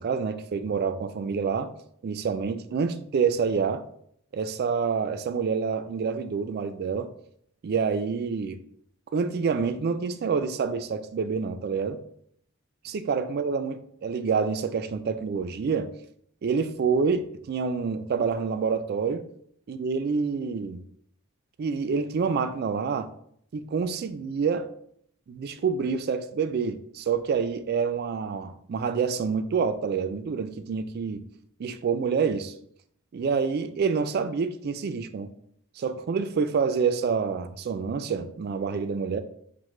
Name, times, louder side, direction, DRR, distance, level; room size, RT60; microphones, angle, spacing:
voice 1, 0.0-1.7 2.0-3.8 4.3-7.1 7.6-8.6 9.1-12.0 12.8-15.9 16.4-19.2 19.7-20.8 21.6-23.1 23.5-24.7 25.3-31.2 31.6-32.5 33.1-35.3 35.8-39.2, right 5 dB, 45° right, 0.3 m, -27 dB
5.8 x 2.1 x 3.1 m
head